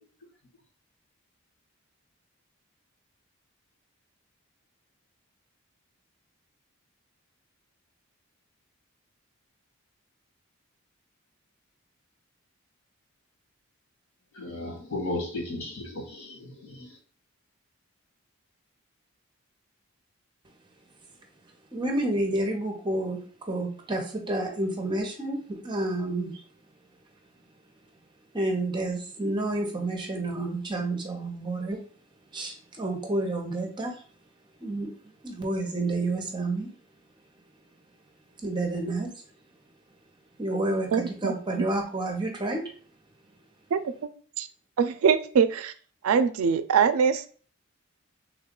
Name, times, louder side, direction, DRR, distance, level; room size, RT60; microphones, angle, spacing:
voice 1, 14.3-16.9, left 2 dB, 90° left, 1.9 m, -35 dB
voice 2, 21.7-26.4 28.3-31.8 32.3-34.0 34.6-34.9 35.2-36.7 38.4-39.1 40.4-42.7, right 2 dB, 20° right, 0.7 m, -29 dB
voice 3, 40.9-41.7 43.7-43.9 44.4-44.5 44.8-45.7 46.0-47.3, right 6 dB, 80° right, 0.4 m, -23 dB
3.6 x 2.3 x 3.6 m
head